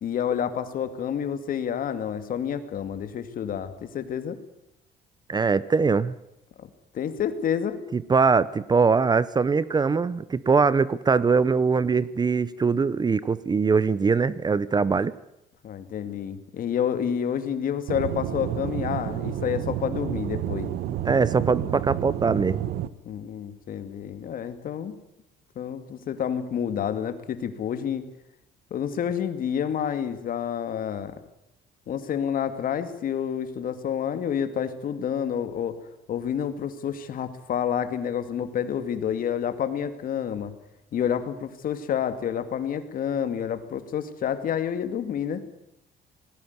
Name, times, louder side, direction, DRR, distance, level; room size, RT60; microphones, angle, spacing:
voice 1, 0.0-4.4 6.6-6.7 6.9-7.8 15.6-20.7 23.1-25.0 25.6-28.1 28.7-31.2 31.9-35.8 36.1-40.5 40.9-45.4, left 8 dB, 55° left, 10 dB, 2.3 m, -29 dB
voice 2, 5.3-6.1 7.9-15.1 21.0-22.6, right 5 dB, 25° right, 18 dB, 0.7 m, -22 dB
Aircraft / Engine, 17.9-22.9, right 12 dB, 75° right, 1.2 m, -30 dB
19.5 x 16.5 x 9.6 m, 0.84 s
cardioid pair, 110°, 17 cm